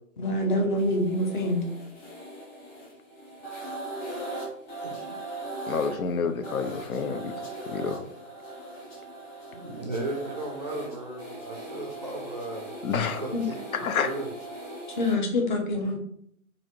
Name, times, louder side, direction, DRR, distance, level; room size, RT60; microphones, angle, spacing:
voice 1, 0.2-1.6 13.3-13.4 15.0-16.0, left 1 dB, 35° left, 2 dB, 0.6 m, -25 dB
sound 1, 0.8-15.1, right 1 dB, 20° left, 1.1 m, -40 dB
voice 2, 4.8-5.2 9.5-14.3, right 2 dB, 35° right, 0 dB, 0.4 m, -36 dB
voice 3, 5.7-7.3 7.7-8.0 12.8-13.2 13.8-14.1, left 6 dB, 80° left, 7 dB, 0.6 m, -28 dB
3.1 x 2.5 x 2.8 m, 0.69 s
hypercardioid pair, 140°, 42 cm